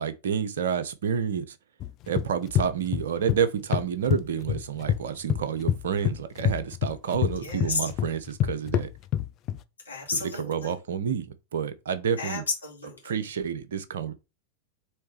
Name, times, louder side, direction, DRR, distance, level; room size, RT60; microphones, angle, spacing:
voice 1, 0.0-1.6 2.1-8.9 10.5-12.4 13.0-14.1, right 7 dB, 60° right, 0.5 m, -29 dB
sound 1, 1.8-3.4 3.7-5.0 5.3-9.6, left 11 dB, 35° left, 0.4 m, -27 dB
voice 2, 7.4-7.9 9.9-10.8 12.2-13.1, left 4 dB, 75° left, 1.9 m, -32 dB
4.4 x 3.1 x 3.2 m
figure-of-eight pair, 90°, 0 cm